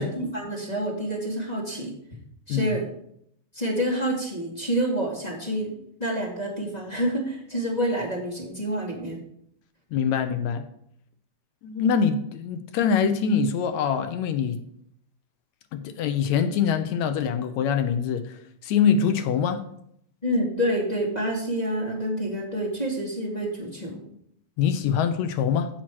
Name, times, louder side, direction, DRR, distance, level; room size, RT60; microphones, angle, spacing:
voice 1, 0.0-1.9 2.5-2.9 3.5-5.7 6.0-9.2 20.2-24.0, equal, 15° left, -2 dB, 1.9 m, -28 dB
voice 2, 9.9-10.7 11.6-14.6 15.7-19.6 24.6-25.7, left 7 dB, 75° left, 8 dB, 2.1 m, -24 dB
14.5 x 5.9 x 4.7 m, 0.71 s
omnidirectional pair, 3.4 m